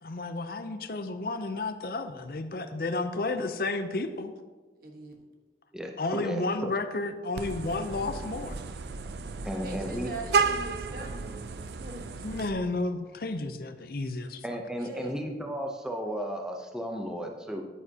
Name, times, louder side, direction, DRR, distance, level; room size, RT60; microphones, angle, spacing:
voice 1, 0.0-4.3 6.0-8.6 12.2-14.4, left 2 dB, 55° left, 9 dB, 0.6 m, -32 dB
voice 2, 4.8-5.2 9.4-12.5 14.8-15.2, right 3 dB, 55° right, 2 dB, 1.3 m, -42 dB
voice 3, 5.7-6.7 9.4-10.1 14.4-17.6, equal, 5° right, 2 dB, 0.7 m, -34 dB
Vehicle horn car horn honking, 7.4-12.5, right 5 dB, 70° right, 0.5 m, -32 dB
10.0 x 9.1 x 2.8 m, 1.3 s
head